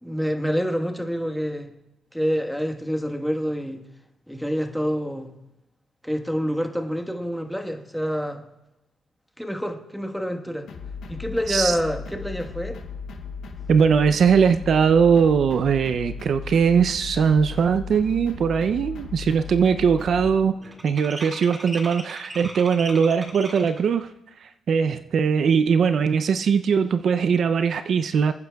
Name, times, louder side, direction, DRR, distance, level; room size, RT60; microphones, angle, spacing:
voice 1, 0.0-1.7 2.1-3.8 4.3-5.3 6.0-8.4 9.4-10.7 11.1-12.8, equal, ahead, 1.3 m, -27 dB
sound 1, 10.7-20.3, left 5 dB, 70° left, 1.8 m, -36 dB
voice 2, 13.7-20.6 20.8-24.1 24.4-28.3, right 6 dB, 60° right, 0.5 m, -20 dB
sound 2, 18.2-18.3 18.7-19.0 19.3-23.9, right 1 dB, 20° right, 2.2 m, -39 dB
27.5 x 9.6 x 2.3 m
cardioid pair, 90°, 0 cm